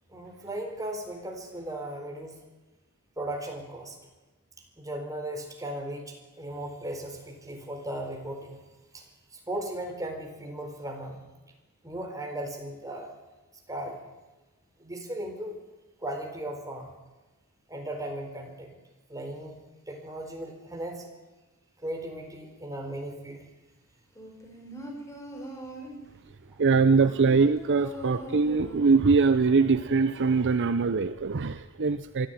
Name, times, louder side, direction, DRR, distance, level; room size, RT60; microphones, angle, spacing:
voice 1, 0.1-2.4 3.2-4.0 4.8-8.6 8.9-9.0 9.3-11.3 11.8-13.1 13.7-14.0 14.8-15.6 16.0-16.9 17.7-18.8 19.1-19.6 19.9-21.1 21.8-23.4, right 1 dB, 15° right, 3 dB, 4.2 m, -37 dB
sound 1, 24.2-26.1 26.7-29.1 29.4-29.5, right 1 dB, 15° left, 4.7 m, -41 dB
voice 2, 26.6-32.3, right 4 dB, 55° right, 12 dB, 0.7 m, -22 dB
23.5 x 14.0 x 9.2 m, 1.1 s
head